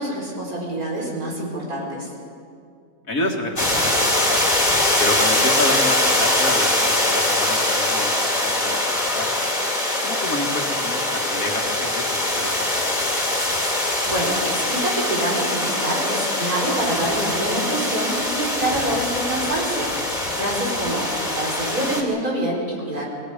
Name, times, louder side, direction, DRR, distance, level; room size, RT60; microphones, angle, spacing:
voice 1, 0.0-2.1 13.8-23.0, right 1 dB, 70° right, -3 dB, 5.5 m, -26 dB
voice 2, 3.1-4.4 5.0-9.3 10.0-13.4, left 2 dB, 65° left, 1 dB, 2.7 m, -29 dB
sound 1, 3.6-22.0, left 1 dB, 30° left, 3.1 m, -22 dB
28.0 x 20.5 x 5.2 m, 2.3 s
omnidirectional pair, 1.6 m